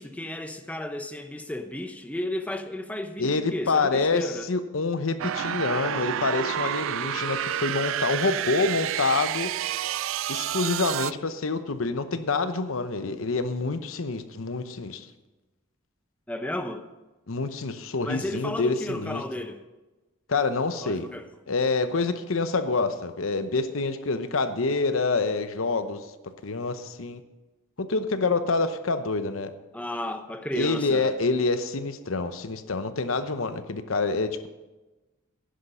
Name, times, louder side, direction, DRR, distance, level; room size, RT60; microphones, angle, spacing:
voice 1, 0.0-4.5 16.3-16.9 18.0-19.6 20.8-21.3 29.7-31.1, left 1 dB, 5° left, 0.7 m, -33 dB
voice 2, 3.2-9.5 10.3-15.1 17.3-19.2 20.3-21.1 21.5-26.1 26.4-27.2 27.8-29.5 30.5-34.5, left 3 dB, 80° left, 0.9 m, -27 dB
sound 1, 5.2-11.1, right 11 dB, 70° right, 0.3 m, -29 dB
10.5 x 10.5 x 5.7 m
head